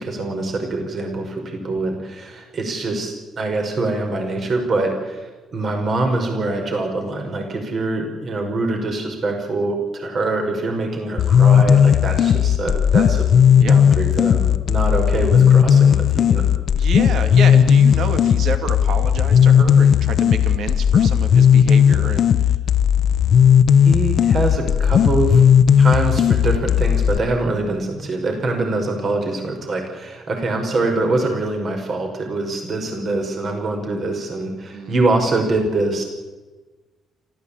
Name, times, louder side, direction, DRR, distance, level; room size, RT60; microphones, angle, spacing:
voice 1, 0.0-13.3 13.7-16.5 23.8-25.4 25.8-36.0, right 2 dB, 50° right, 3 dB, 5.3 m, -24 dB
sound 1, 11.2-27.2, left 8 dB, 60° left, 0.9 m, -15 dB
voice 2, 16.7-22.5 34.7-34.9, right 5 dB, 70° right, 7 dB, 2.5 m, -29 dB
28.5 x 14.5 x 8.6 m, 1.2 s
cardioid pair, 90°, 0 cm